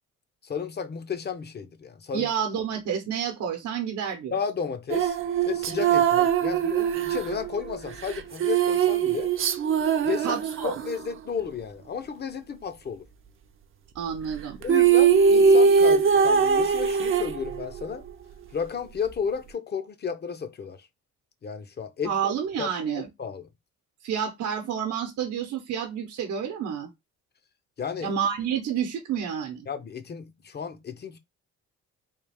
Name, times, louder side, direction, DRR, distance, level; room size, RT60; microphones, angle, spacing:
voice 1, 0.4-2.3 4.3-5.2 5.5-9.3 10.0-13.0 14.6-18.0 18.5-20.9 21.4-22.1 22.6-23.5 27.8-28.1 29.7-31.2, left 6 dB, 35° left, 0.6 m, -33 dB
voice 2, 2.1-4.3 10.2-10.7 13.9-14.6 22.0-23.1 24.0-26.9 28.0-29.7, right 8 dB, 75° right, 0.8 m, -29 dB
sound 1, 4.9-11.1 14.3-14.4 14.6-17.8, right 6 dB, 45° right, 0.5 m, -21 dB
3.6 x 2.4 x 3.4 m
cardioid pair, 90°, 30 cm